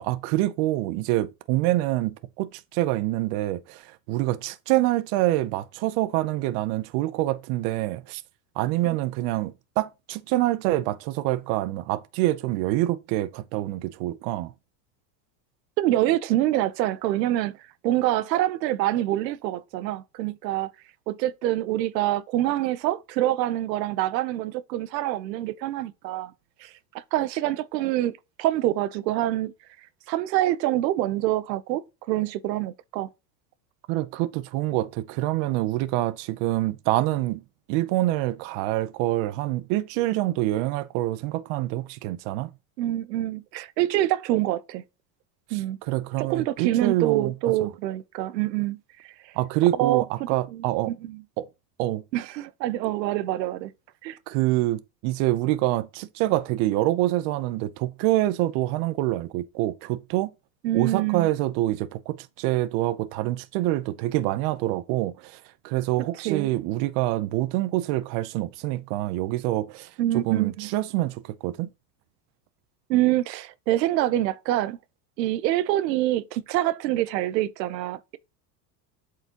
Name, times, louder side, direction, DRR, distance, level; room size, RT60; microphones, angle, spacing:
voice 1, 0.0-8.2 8.6-14.5 33.9-37.4 37.7-42.5 45.5-45.6 45.9-47.5 49.4-50.9 51.4-51.5 51.8-52.0 54.3-60.3 60.7-71.7, right 16 dB, 50° right, 0.7 m, -26 dB
voice 2, 15.8-17.6 17.8-20.7 21.1-26.3 26.6-29.5 30.1-33.1 42.8-44.8 45.5-45.8 46.2-48.8 49.0-49.3 49.8-51.2 52.1-53.7 54.0-54.2 60.6-61.3 66.2-66.5 70.0-70.7 72.9-74.8 75.2-78.2, right 14 dB, 85° right, 0.8 m, -26 dB
7.8 x 4.9 x 2.9 m
supercardioid pair, 135°, 49 cm